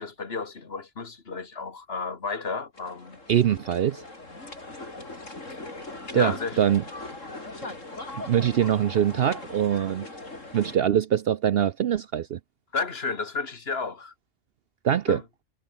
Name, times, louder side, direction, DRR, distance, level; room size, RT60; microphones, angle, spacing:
voice 1, 0.0-3.2 6.1-6.6 12.7-14.1 15.1-15.2, left 4 dB, 50° left, 2.0 m, -32 dB
sound 1, 2.7-10.8, left 2 dB, 75° left, 5.3 m, -40 dB
voice 2, 3.3-4.0 6.1-6.8 8.1-10.1 10.5-12.4 14.8-15.2, right 10 dB, 60° right, 0.7 m, -23 dB
omnidirectional pair, 1.3 m